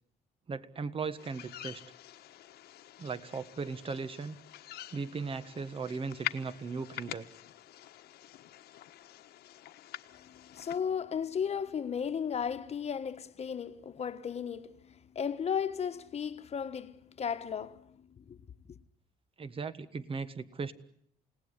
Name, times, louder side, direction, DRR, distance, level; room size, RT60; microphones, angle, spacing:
voice 1, 0.5-1.8 3.0-4.4 4.9-7.2 19.4-20.7, right 4 dB, 30° right, 1.6 m, -37 dB
sound 1, 1.2-10.8, left 13 dB, 70° left, 1.4 m, -45 dB
voice 2, 10.1-18.4 18.7-18.8, left 7 dB, 40° left, 1.5 m, -35 dB
29.0 x 18.0 x 9.7 m
cardioid pair, 110°, 17 cm